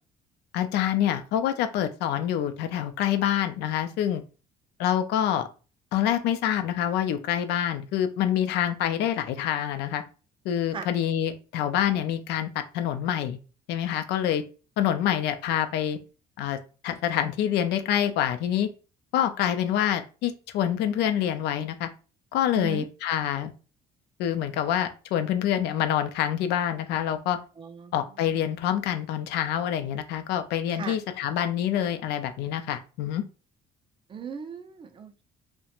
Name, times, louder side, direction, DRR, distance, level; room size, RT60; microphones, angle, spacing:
voice 1, 0.5-4.2 4.8-5.5 5.9-10.0 10.5-13.4 13.7-14.4 14.8-16.0 16.4-16.6 16.8-18.7 19.1-21.9 22.3-23.5 24.2-27.4 27.9-33.2, left 10 dB, 80° left, 9 dB, 0.4 m, -26 dB
voice 2, 22.5-22.9 27.6-27.9 30.7-31.0 34.1-35.2, right 5 dB, 30° right, 8 dB, 0.4 m, -36 dB
2.4 x 2.1 x 2.9 m, 0.34 s
cardioid pair, 110°, 17 cm